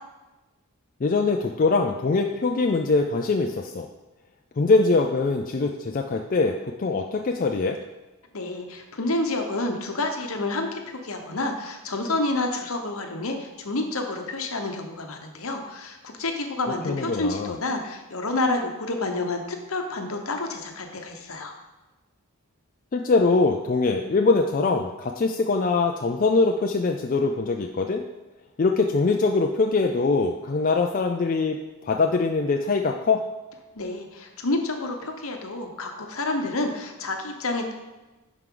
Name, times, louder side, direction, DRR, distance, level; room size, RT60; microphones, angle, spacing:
voice 1, 1.0-3.9 4.6-7.8 16.8-17.6 22.9-28.0 28.6-33.2, left 3 dB, 40° left, 3 dB, 0.4 m, -23 dB
voice 2, 8.3-21.5 33.7-37.7, left 2 dB, 65° left, 4 dB, 1.1 m, -29 dB
11.0 x 4.6 x 3.8 m, 1.1 s
head